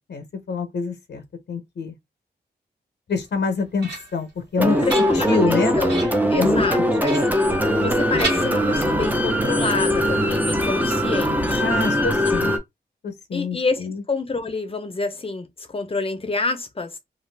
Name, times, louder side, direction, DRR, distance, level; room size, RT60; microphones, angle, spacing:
voice 1, 0.1-2.0 3.1-5.8 6.4-6.6 7.0-7.1 11.6-12.5 13.0-14.0, left 4 dB, 80° left, 0.7 m, -26 dB
sound 1, 3.3-4.3 4.7-5.5 5.9-6.3 7.0-7.9 8.2-9.1, right 3 dB, 90° right, 1.3 m, -33 dB
voice 2, 4.6-6.0 6.3-7.2 7.8-11.8 12.2-12.3 13.3-17.0, left 3 dB, 30° left, 0.7 m, -28 dB
sound 2, 4.6-12.6, equal, 10° right, 0.6 m, -21 dB
2.5 x 2.4 x 3.3 m
wide cardioid pair, 105°, 18 cm